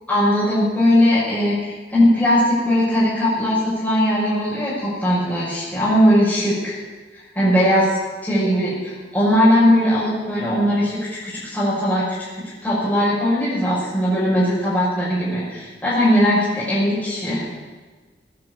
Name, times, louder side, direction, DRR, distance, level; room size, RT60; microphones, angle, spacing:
voice 1, 0.1-6.7 7.4-7.8 8.2-12.1 12.6-17.4, equal, 10° left, -11 dB, 5.8 m, -19 dB
18.0 x 9.6 x 8.3 m, 1.4 s
head